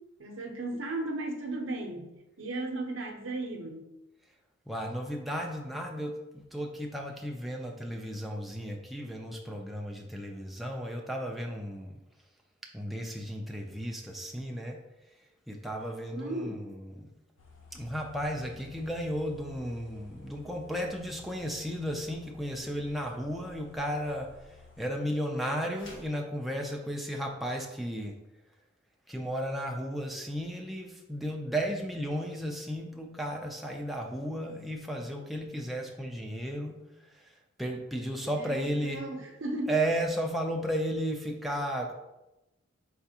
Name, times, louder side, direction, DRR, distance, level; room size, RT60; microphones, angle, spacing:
voice 1, 0.2-3.9 16.1-16.7 38.2-39.7, right 2 dB, 80° right, 2 dB, 0.7 m, -36 dB
voice 2, 4.7-12.0 12.7-14.8 15.5-17.1 17.7-28.2 29.1-36.8 37.1-39.1 39.7-41.9, equal, ahead, 0 dB, 0.4 m, -34 dB
sound 1, 17.4-24.8, left 4 dB, 85° left, 0.6 m, -54 dB
sound 2, 25.7-26.2, left 1 dB, 70° left, 1.4 m, -49 dB
4.8 x 3.4 x 2.8 m, 0.96 s
head